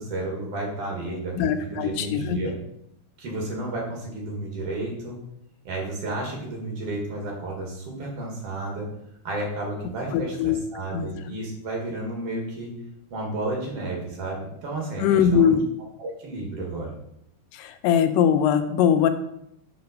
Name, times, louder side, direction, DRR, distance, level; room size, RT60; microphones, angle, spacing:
voice 1, 0.0-2.5 3.2-5.2 5.6-8.9 9.2-12.7 13.1-15.6 16.0-16.9, right 2 dB, 50° right, -1 dB, 2.6 m, -32 dB
voice 2, 1.4-2.4 10.1-10.6 10.9-11.1 15.0-15.6 17.5-19.1, left 8 dB, 90° left, 9 dB, 2.3 m, -21 dB
5.7 x 5.2 x 5.2 m, 0.77 s
omnidirectional pair, 3.8 m